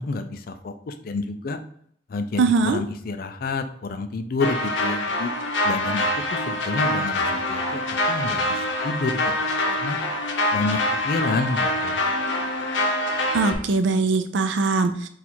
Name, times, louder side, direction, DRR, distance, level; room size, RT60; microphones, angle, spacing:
voice 1, 0.0-1.6 2.1-5.3 5.6-7.8 8.1-10.0 10.5-10.8 11.0-12.0, left 3 dB, 50° left, 9 dB, 0.4 m, -29 dB
voice 2, 2.4-2.8 13.3-15.1, right 4 dB, 85° right, 9 dB, 0.4 m, -21 dB
sound 1, 4.4-13.6, left 1 dB, 80° left, 0.7 m, -25 dB
4.2 x 2.4 x 4.3 m, 0.64 s
head